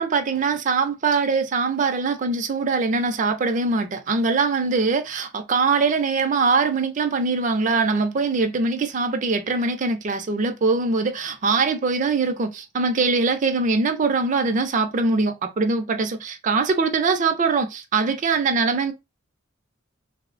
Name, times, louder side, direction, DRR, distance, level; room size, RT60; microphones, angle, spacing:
voice 1, 0.0-18.9, right 4 dB, 40° right, 0.4 m, -22 dB
3.1 x 2.0 x 2.4 m
head